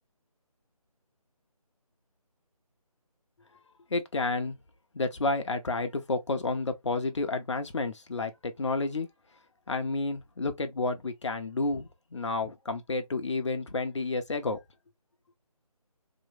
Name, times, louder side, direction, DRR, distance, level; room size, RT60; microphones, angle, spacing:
voice 1, 3.9-4.6 4.9-9.1 9.7-14.6, left 3 dB, 50° left, 0.8 m, -30 dB
3.0 x 3.0 x 2.5 m
figure-of-eight pair, 160°, 19 cm